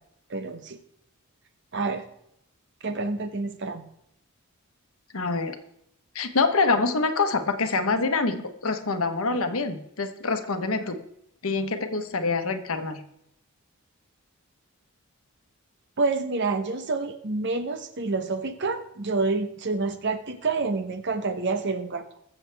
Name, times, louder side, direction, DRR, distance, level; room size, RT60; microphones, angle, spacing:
voice 1, 0.3-0.8 1.7-2.0 2.8-3.9 9.3-9.4 16.0-22.0, right 3 dB, 55° right, 9 dB, 1.0 m, -28 dB
voice 2, 5.1-5.6 6.1-11.0 11.4-13.0, left 3 dB, 70° left, 8 dB, 1.1 m, -25 dB
21.5 x 7.3 x 3.4 m, 0.79 s
head